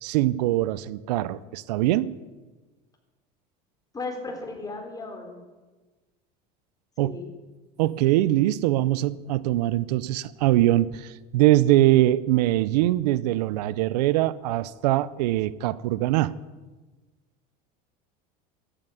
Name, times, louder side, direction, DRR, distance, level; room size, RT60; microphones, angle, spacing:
voice 1, 0.0-2.1 7.0-7.2 7.8-16.3, right 15 dB, 90° right, 19 dB, 0.6 m, -22 dB
voice 2, 3.9-5.4 7.0-7.3, left 3 dB, 20° left, 3 dB, 3.7 m, -35 dB
13.5 x 9.1 x 9.3 m, 1.3 s
supercardioid pair, 120°, 20 cm